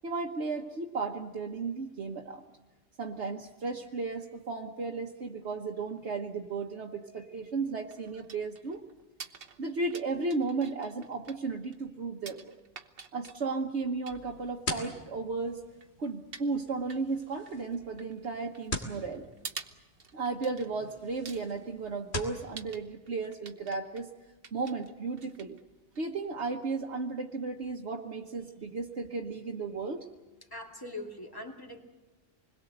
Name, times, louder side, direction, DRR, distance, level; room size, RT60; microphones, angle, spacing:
voice 1, 0.0-2.4 3.0-8.8 9.6-12.6 13.1-15.6 16.0-19.3 20.1-24.1 24.5-25.6 26.0-30.1, right 4 dB, 70° right, 0 dB, 1.5 m, -34 dB
sound 1, 7.4-26.4, right 5 dB, 55° right, 1.3 m, -50 dB
sound 2, 14.1-22.4, left 2 dB, 65° left, 2.9 m, -43 dB
voice 2, 30.4-31.8, left 1 dB, 20° left, 2 dB, 2.6 m, -42 dB
27.0 x 21.5 x 8.0 m, 1.1 s
omnidirectional pair, 1.2 m